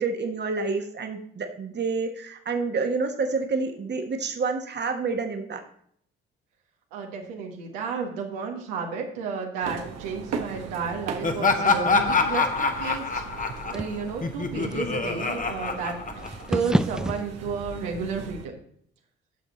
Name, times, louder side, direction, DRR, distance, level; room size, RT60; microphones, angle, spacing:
voice 1, 0.0-5.6, right 4 dB, 35° right, 5 dB, 1.4 m, -28 dB
voice 2, 6.9-13.3 13.7-16.0 16.5-18.5, right 5 dB, 70° right, 1 dB, 1.5 m, -32 dB
sound 1, 9.6-18.4, right 5 dB, 55° right, 1.3 m, -39 dB
Laughter, 11.2-16.7, left 4 dB, 25° left, 1.3 m, -26 dB
sound 2, 11.6-17.2, right 1 dB, ahead, 0.5 m, -33 dB
10.0 x 7.1 x 4.1 m, 0.65 s
figure-of-eight pair, 45°, 31 cm